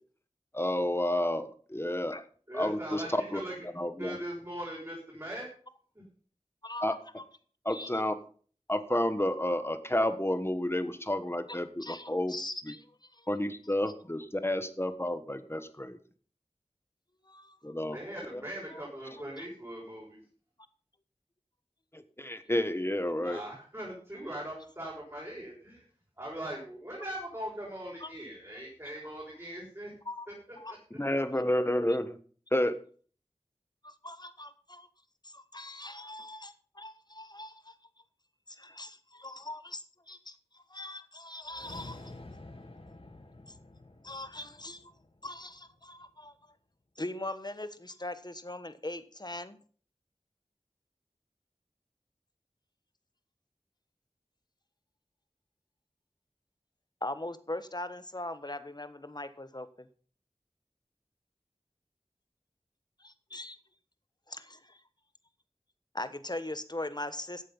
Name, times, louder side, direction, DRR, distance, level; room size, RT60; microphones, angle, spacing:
voice 1, 0.5-2.2 2.5-4.2 6.8-7.0 7.6-8.1 8.7-12.3 12.7-12.8 13.3-16.0 17.6-18.0 18.3-18.4 21.9-23.4 31.0-32.2 32.5-32.8, left 1 dB, 20° left, 11 dB, 1.4 m, -30 dB
voice 2, 2.5-3.5 4.0-5.5 6.0-6.1 17.9-20.2 23.2-25.8 26.2-29.9 30.7-30.8, right 1 dB, 25° right, -5 dB, 5.8 m, -40 dB
voice 3, 6.6-7.2 7.7-8.0 11.5-12.9 13.1-13.3 17.2-17.7 18.7-18.8 19.4-19.5 28.0-28.1 30.0-30.3 30.6-30.8 33.8-34.9 35.2-37.8 38.5-42.1 43.5-43.6 44.0-44.9 45.2-46.5 47.0-49.6 57.0-59.9 63.0-63.6 64.3-64.8 65.9-67.5, left 1 dB, 40° left, 12 dB, 1.3 m, -41 dB
sound 1, 41.4-45.8, left 2 dB, 55° left, 2.0 m, -49 dB
14.0 x 8.2 x 5.5 m, 0.43 s
wide cardioid pair, 45°, 12 cm